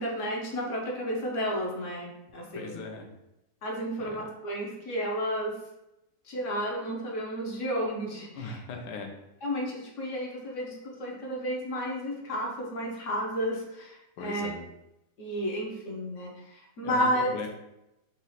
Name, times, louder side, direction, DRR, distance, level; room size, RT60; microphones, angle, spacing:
voice 1, 0.0-2.8 3.6-5.5 6.3-8.6 9.4-14.5 15.2-17.3, equal, 55° left, -1 dB, 1.0 m, -32 dB
voice 2, 2.5-3.1 4.0-4.3 8.3-9.1 14.2-14.6 16.8-17.5, left 3 dB, 75° left, 3 dB, 1.3 m, -39 dB
4.1 x 2.4 x 4.0 m, 0.89 s
omnidirectional pair, 1.9 m